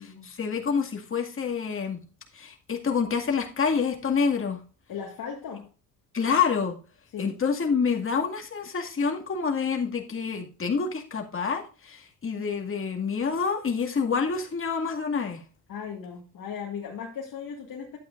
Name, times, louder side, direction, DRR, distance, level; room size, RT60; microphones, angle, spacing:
voice 1, 0.0-2.0 2.3-4.6 6.1-6.8 7.2-15.4, left 5 dB, 35° left, 2.1 m, -27 dB
voice 2, 4.9-5.7 7.1-7.4 15.7-18.0, left 7 dB, 60° left, 2.0 m, -37 dB
11.5 x 8.6 x 2.5 m
cardioid pair, 95°, 38 cm